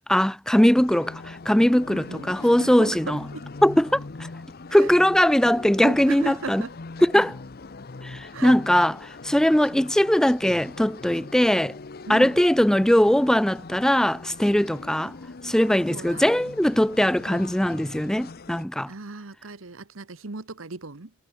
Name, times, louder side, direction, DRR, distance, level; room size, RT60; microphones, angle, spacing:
voice 1, 0.1-3.2 3.6-4.0 4.7-6.6 7.0-7.3 8.0-8.9 9.2-11.7 12.1-15.1 15.4-18.9, equal, 5° left, 0.3 m, -20 dB
sound 1, 0.8-18.6, left 3 dB, 45° left, 0.7 m, -41 dB
voice 2, 1.9-3.5 4.7-4.9 5.8-6.8 7.1-7.3 8.3-8.6 12.0-12.4 15.9-16.5 18.9-21.1, right 3 dB, 70° right, 1.3 m, -36 dB
head